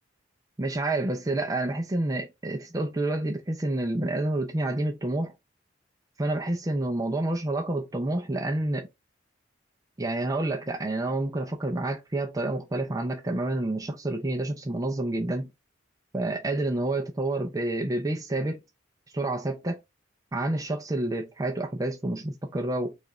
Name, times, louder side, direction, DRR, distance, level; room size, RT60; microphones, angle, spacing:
voice 1, 0.6-5.3 6.2-8.9 10.0-15.5 16.1-18.6 19.1-19.8 20.3-23.0, right 2 dB, 20° right, 0.5 m, -29 dB
4.9 x 2.4 x 3.9 m
head